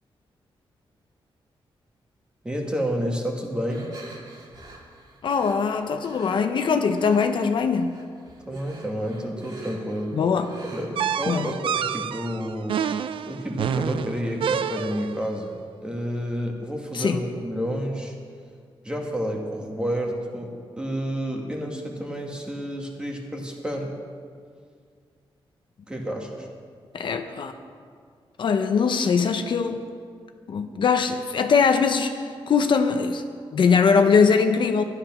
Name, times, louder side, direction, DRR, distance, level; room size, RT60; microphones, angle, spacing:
voice 1, 2.4-3.9 8.4-10.1 10.7-13.0 13.3-15.5 15.8-18.1 18.8-23.9 25.9-26.5, equal, 10° right, 0 dB, 1.7 m, -30 dB
sound 1, 3.7-6.3 6.9-7.4 7.7-11.1, right 3 dB, 50° right, 2.4 m, -44 dB
voice 2, 5.2-8.0 10.1-10.5 11.3-11.5 16.9-17.2 26.9-27.5 28.4-29.8 30.5-33.2 33.5-34.8, left 5 dB, 60° left, 6 dB, 0.7 m, -21 dB
sound 2, 11.0-15.2, right 8 dB, 70° right, 0.4 m, -28 dB
13.0 x 11.0 x 6.1 m, 2.1 s
wide cardioid pair, 160°, 9 cm